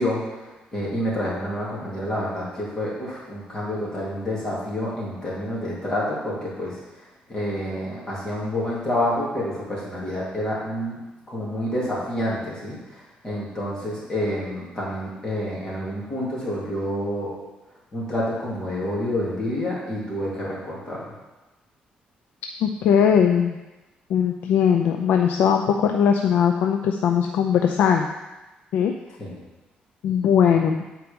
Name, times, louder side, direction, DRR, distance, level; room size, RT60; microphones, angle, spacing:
voice 1, 0.0-11.0 11.3-17.3 17.9-21.1 29.2-29.4, left 1 dB, 20° left, -6 dB, 2.8 m, -28 dB
voice 2, 22.6-23.6 24.1-28.1 28.7-28.9 30.0-30.8, left 8 dB, 85° left, 4 dB, 0.5 m, -19 dB
9.4 x 4.5 x 5.3 m, 1.1 s
cardioid pair, 135°, 3 cm